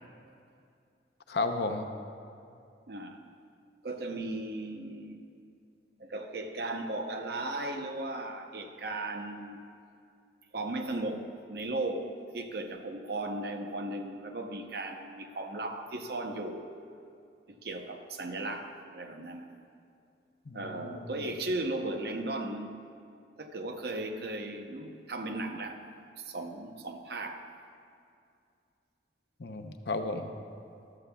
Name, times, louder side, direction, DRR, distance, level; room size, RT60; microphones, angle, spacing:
voice 1, 1.3-1.9 20.5-21.0 29.4-30.3, left 3 dB, 65° left, 6 dB, 0.7 m, -33 dB
voice 2, 2.9-3.3 3.8-5.2 6.0-9.6 10.5-16.7 17.5-19.5 20.5-22.8 23.4-25.8 26.2-27.5, right 2 dB, 60° right, 6 dB, 0.7 m, -36 dB
14.0 x 12.5 x 2.3 m, 2.4 s
head